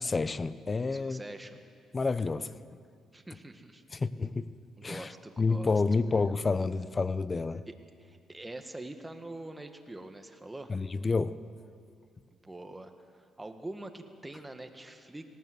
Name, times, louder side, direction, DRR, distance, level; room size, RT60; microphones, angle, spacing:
voice 1, 0.0-1.2 1.9-2.5 3.9-4.5 4.8-5.1 5.4-7.6 10.7-11.4, left 4 dB, 30° left, 15 dB, 0.7 m, -29 dB
voice 2, 0.9-1.6 3.1-3.8 4.8-6.0 7.7-7.8 8.0-10.7 12.3-15.3, right 2 dB, 15° right, 6 dB, 1.7 m, -44 dB
18.5 x 18.5 x 7.9 m, 2.3 s
cardioid pair, 90°, 0 cm